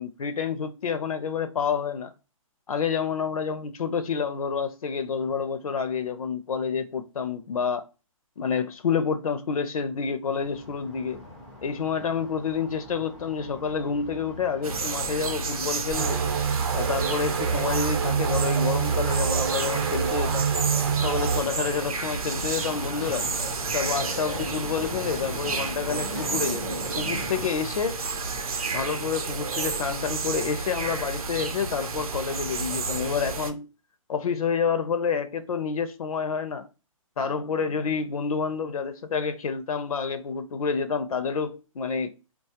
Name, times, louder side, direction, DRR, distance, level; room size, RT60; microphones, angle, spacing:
voice 1, 0.0-2.1 2.7-7.8 8.4-11.2 11.6-16.3 16.7-20.5 21.0-23.3 23.7-28.0 28.7-33.7 34.1-36.7 37.2-42.1, left 6 dB, 80° left, 0.5 m, -28 dB
sound 1, 10.3-27.5, left 1 dB, ahead, 0.3 m, -41 dB
sound 2, 14.6-33.5, right 4 dB, 85° right, 0.7 m, -31 dB
sound 3, 15.9-21.4, right 7 dB, 45° right, 0.6 m, -26 dB
4.2 x 2.3 x 2.7 m
hypercardioid pair, 155°, 18 cm